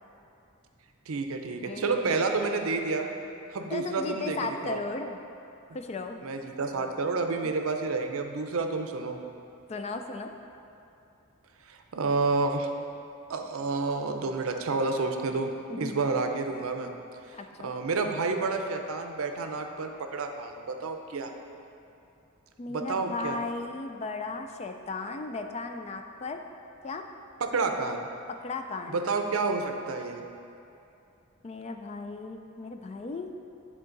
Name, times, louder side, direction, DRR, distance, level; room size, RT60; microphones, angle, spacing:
voice 1, 1.1-3.1 3.5-4.4 4.6-4.8 6.2-9.2 11.7-12.7 13.3-15.5 15.8-16.9 17.6-21.3 22.7-23.4 27.4-28.0 28.9-30.2, right 3 dB, 70° right, 5 dB, 0.5 m, -29 dB
voice 2, 1.6-2.1 3.7-5.2 5.7-6.2 9.7-10.3 15.7-16.0 17.3-17.7 22.6-26.4 26.8-27.0 28.4-29.0 31.4-33.4, left 3 dB, 30° left, 5 dB, 0.3 m, -36 dB
10.5 x 3.8 x 3.9 m, 2.7 s
head